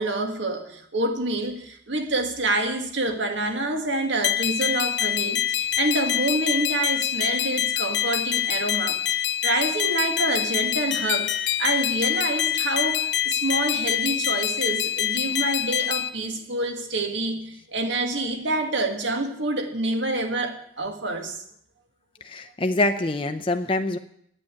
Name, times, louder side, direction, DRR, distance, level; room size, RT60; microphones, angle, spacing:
voice 1, 0.0-9.0 9.4-11.3 11.6-21.4, right 2 dB, 70° right, 5 dB, 1.8 m, -27 dB
sound 1, 4.2-16.1, left 11 dB, 65° left, 0.7 m, -25 dB
voice 2, 22.2-24.0, left 2 dB, 25° left, 7 dB, 0.6 m, -25 dB
8.9 x 8.9 x 9.7 m, 0.69 s
head